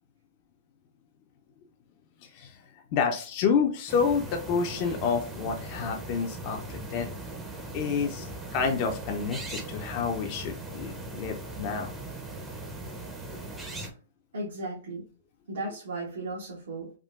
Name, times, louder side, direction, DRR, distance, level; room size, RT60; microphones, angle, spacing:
voice 1, 2.2-7.1 7.7-11.9 13.3-13.4, left 6 dB, 40° left, 3 dB, 0.4 m, -29 dB
sound 1, 3.9-13.9, right 2 dB, 10° right, 0.5 m, -39 dB
voice 2, 14.3-15.0 15.5-16.9, right 2 dB, 85° right, -4 dB, 1.0 m, -35 dB
3.5 x 2.2 x 2.3 m, 0.39 s
hypercardioid pair, 145°, 0 cm